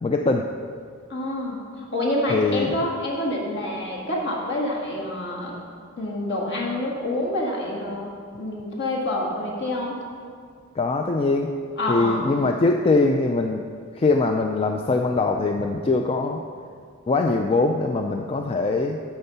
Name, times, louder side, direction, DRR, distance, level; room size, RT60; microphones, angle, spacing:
voice 1, 0.0-0.5 2.3-2.7 10.8-11.6 11.9-13.6 13.9-16.4 17.1-19.0, left 3 dB, 25° left, 3 dB, 0.3 m, -22 dB
voice 2, 1.1-1.6 1.9-5.6 6.0-8.1 8.4-10.0 11.8-12.4, left 1 dB, 55° left, -3 dB, 1.9 m, -27 dB
12.0 x 4.5 x 5.5 m, 2.1 s
head